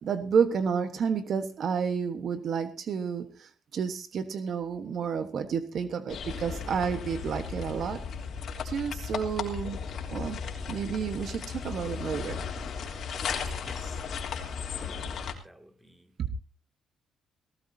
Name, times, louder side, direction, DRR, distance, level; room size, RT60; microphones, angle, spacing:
voice 1, 0.0-8.0 8.6-9.8 10.1-10.4 10.7-12.4 16.2-16.3, right 6 dB, 60° right, 1.3 m, -30 dB
sound 1, 6.1-15.3, left 6 dB, 60° left, 3.1 m, -35 dB
voice 2, 13.6-14.0 14.8-16.1, equal, 5° right, 2.4 m, -54 dB
18.5 x 17.0 x 2.8 m
cardioid pair, 90°, 0 cm